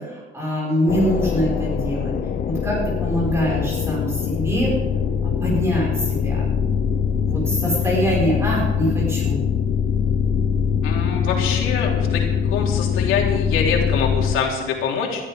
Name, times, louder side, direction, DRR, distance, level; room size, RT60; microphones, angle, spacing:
voice 1, 0.3-2.1 2.6-2.7 3.0-4.7 5.4-5.9 6.2-6.4 7.2-9.4, equal, 15° right, -5 dB, 5.8 m, -23 dB
sound 1, 0.9-14.4, left 7 dB, 45° left, 0.7 m, -22 dB
voice 2, 10.8-12.2 12.5-15.2, left 6 dB, 80° left, -1 dB, 3.4 m, -24 dB
21.5 x 13.5 x 3.8 m, 1.2 s
cardioid pair, 175°, 21 cm